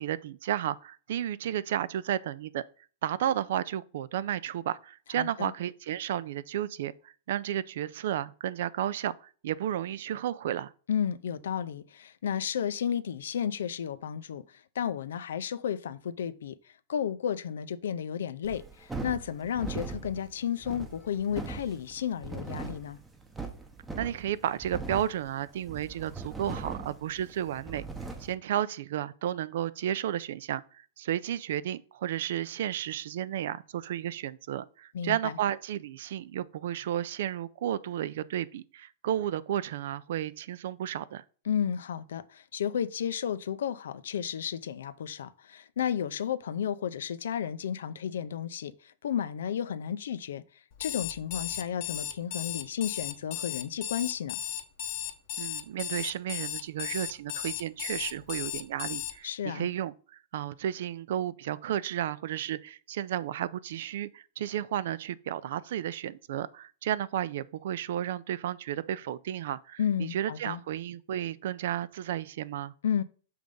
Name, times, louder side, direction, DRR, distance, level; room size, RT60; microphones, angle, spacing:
voice 1, 0.0-2.6 3.0-10.7 23.9-27.8 28.2-41.2 55.4-72.7, right 11 dB, 65° right, 0.4 m, -33 dB
voice 2, 5.2-5.5 10.9-16.6 16.9-23.0 34.9-35.4 41.5-50.4 50.8-54.4 59.2-59.7 69.8-70.6 72.8-73.0, left 8 dB, 90° left, 0.5 m, -32 dB
sound 1, 18.4-28.3, right 3 dB, 5° right, 0.8 m, -40 dB
Alarm, 50.7-59.1, left 12 dB, 45° left, 0.7 m, -35 dB
6.4 x 3.4 x 5.3 m
supercardioid pair, 160°, 0 cm